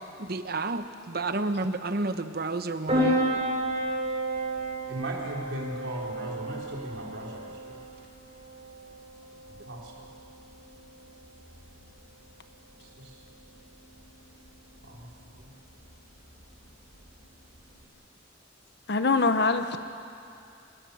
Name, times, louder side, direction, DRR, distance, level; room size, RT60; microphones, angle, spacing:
voice 1, 0.2-3.2, right 2 dB, 55° right, 9 dB, 1.0 m, -30 dB
Piano, 2.9-17.9, right 1 dB, 35° right, 7.9 m, -34 dB
voice 2, 4.9-7.7 9.5-9.9 13.0-13.1 14.8-15.1, right 1 dB, 75° right, -2 dB, 4.2 m, -37 dB
voice 3, 18.9-19.8, left 3 dB, 60° left, 8 dB, 0.9 m, -23 dB
27.0 x 20.0 x 7.2 m, 2.6 s
head